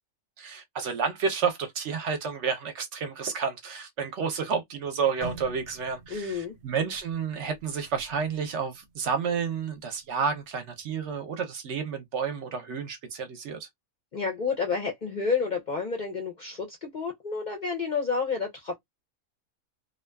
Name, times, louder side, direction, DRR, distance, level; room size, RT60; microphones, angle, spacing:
voice 1, 0.4-13.7, right 6 dB, 65° right, 0.8 m, -30 dB
sound 1, 5.2-9.2 9.6-9.9 10.5-10.8, right 4 dB, 90° right, 1.0 m, -46 dB
voice 2, 6.1-6.6 14.1-18.8, left 5 dB, 50° left, 0.5 m, -30 dB
2.5 x 2.2 x 2.2 m
omnidirectional pair, 1.4 m